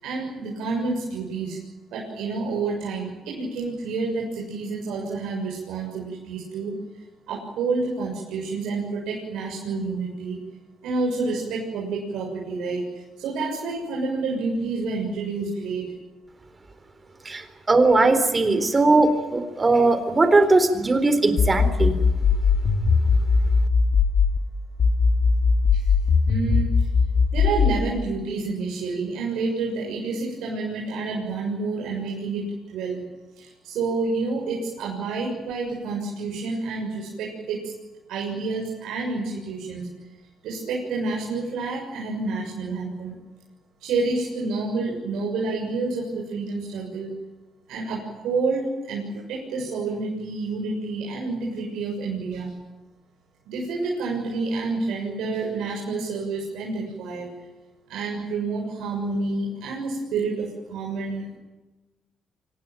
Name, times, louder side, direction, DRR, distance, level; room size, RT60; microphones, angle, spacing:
voice 1, 0.0-1.6 1.9-6.7 7.3-10.4 10.8-12.9 13.2-15.9 25.7-25.8 26.3-26.7 27.3-32.5 32.7-33.0 33.4-37.7 38.1-39.9 40.4-43.2 43.8-47.1 47.7-52.5 53.5-57.3 57.9-61.4, right 3 dB, 85° right, -2 dB, 7.0 m, -29 dB
voice 2, 17.3-22.0, right 2 dB, 25° right, 10 dB, 4.0 m, -19 dB
sound 1, 21.4-24.4 24.8-27.8, left 5 dB, 55° left, 3.0 m, -19 dB
25.0 x 19.5 x 9.2 m, 1.1 s
cardioid pair, 90°, 0 cm